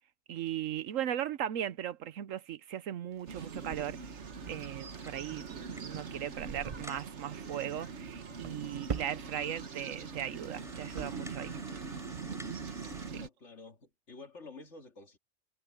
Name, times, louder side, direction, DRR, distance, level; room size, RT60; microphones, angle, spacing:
voice 1, 0.3-4.2 4.5-11.6 13.1-13.2, right 10 dB, 75° right, 1.1 m, -38 dB
sound 1, 3.1-4.9 5.2-5.5 5.9-6.3 6.7-7.2 7.5-7.9 8.3-9.5 9.8-10.0 10.3-11.1, right 6 dB, 35° right, 0.6 m, -43 dB
sound 2, 3.3-13.3, right 5 dB, 60° right, 1.6 m, -42 dB
sound 3, 4.5-6.1 6.4-6.5 6.8-7.1 7.8-7.9 8.2-8.3 8.9-9.0 9.5-9.6 10.4-13.1, equal, ahead, 6.4 m, -52 dB
voice 2, 13.2-15.2, left 3 dB, 60° left, 3.0 m, -50 dB
omnidirectional pair, 1.4 m